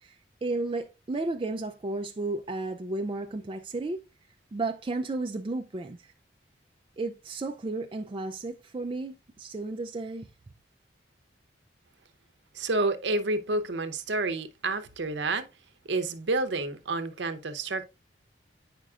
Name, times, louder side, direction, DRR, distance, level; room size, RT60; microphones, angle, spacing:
voice 1, 0.0-4.0 4.5-6.1 7.0-10.3, right 2 dB, 25° right, 0.3 m, -33 dB
voice 2, 12.5-15.5 15.8-17.8, right 2 dB, 65° right, 0.7 m, -29 dB
8.7 x 5.1 x 2.4 m
head